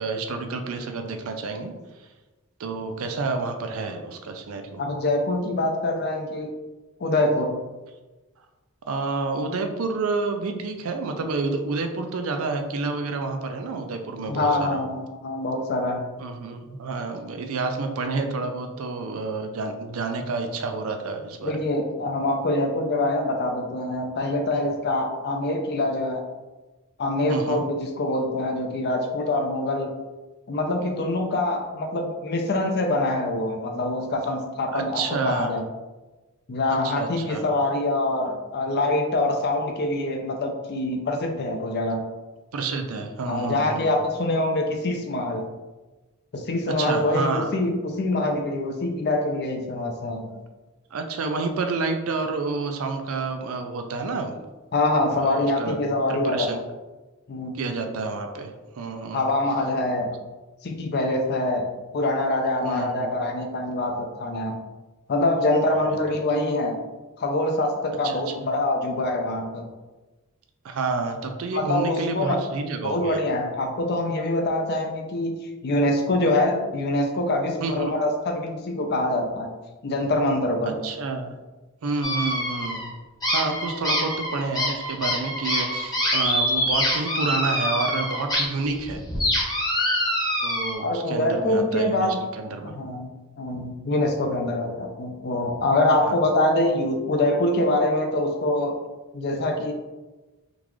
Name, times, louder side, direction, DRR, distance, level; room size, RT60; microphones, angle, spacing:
voice 1, 0.0-1.7 2.6-4.8 8.9-14.8 16.2-21.5 27.3-27.6 34.7-35.6 36.7-37.4 42.5-43.9 46.7-47.5 50.2-50.4 50.9-54.4 55.2-55.8 56.1-56.6 57.5-59.2 62.6-63.1 65.7-66.0 68.0-68.5 70.6-73.2 77.6-77.9 80.6-81.4 81.8-83.0 83.3-89.0 90.4-92.8 96.0-96.2, right 3 dB, 65° right, 6 dB, 0.4 m, -29 dB
voice 2, 4.8-6.5 7.0-7.6 14.3-16.0 21.4-26.2 27.0-29.9 30.5-35.6 36.5-42.0 43.3-45.4 46.3-50.2 54.7-56.5 57.3-57.6 59.1-60.2 60.6-61.7 61.9-64.6 65.1-66.8 67.2-69.6 71.5-72.4 72.8-75.4 75.6-79.5 79.8-80.7 90.8-92.2 92.7-93.1 93.4-98.8 99.1-99.7, left 1 dB, 50° left, 3 dB, 0.5 m, -24 dB
sound 1, 82.0-82.9 83.2-88.4 88.7-90.7, left 1 dB, 15° left, 0.9 m, -25 dB
3.7 x 2.4 x 3.1 m, 1.2 s
head